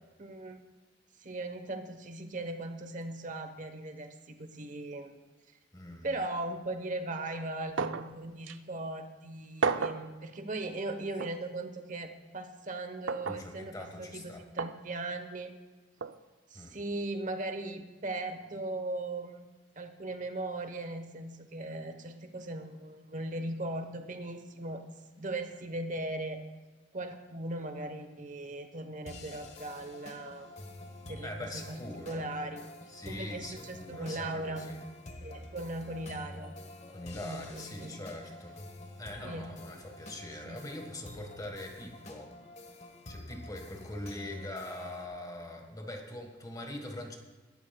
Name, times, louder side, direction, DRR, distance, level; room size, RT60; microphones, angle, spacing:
voice 1, 0.2-0.6 1.2-5.1 6.0-15.5 16.5-19.5 19.8-24.8 25.2-26.5 26.9-30.5 31.0-31.8 32.1-32.7 33.0-34.7 35.2-36.5 37.2-38.0 39.2-39.5 40.4-40.6, right 2 dB, 45° right, 7 dB, 1.1 m, -38 dB
voice 2, 5.7-6.1 13.3-14.4 16.5-16.8 31.2-32.3 32.9-34.8 35.1-35.4 36.9-38.6 39.0-42.3 43.1-47.2, left 1 dB, 20° left, 3 dB, 1.5 m, -42 dB
sound 1, 7.8-8.1 8.5-8.6 9.6-10.1 11.2-11.4 13.1-13.4 14.6-14.8 16.0-16.2, right 5 dB, 85° right, 0.5 m, -31 dB
sound 2, 29.1-45.1, left 1 dB, 40° left, 1.2 m, -48 dB
22.5 x 13.0 x 2.3 m, 1.2 s
head